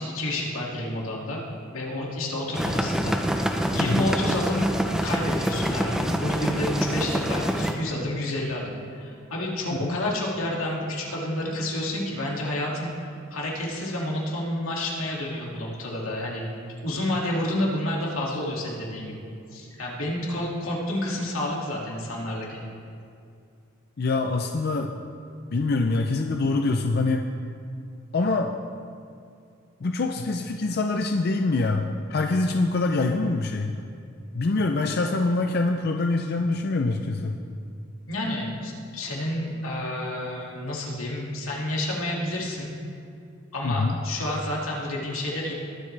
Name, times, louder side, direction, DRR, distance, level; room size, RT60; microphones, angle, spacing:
voice 1, 0.0-1.4 1.7-4.7 5.0-12.9 13.3-16.5 16.8-19.3 19.5-22.6 38.1-42.7 43.5-45.5, left 1 dB, 90° left, -3 dB, 2.3 m, -29 dB
sound 1, 2.5-7.7, equal, 5° right, 0.6 m, -26 dB
voice 2, 3.8-4.1 9.8-10.0 24.0-24.9 25.5-27.3 28.1-28.5 29.8-33.7 34.3-37.4 43.6-44.0, left 3 dB, 50° left, 4 dB, 0.5 m, -25 dB
20.5 x 7.3 x 3.3 m, 2.4 s
head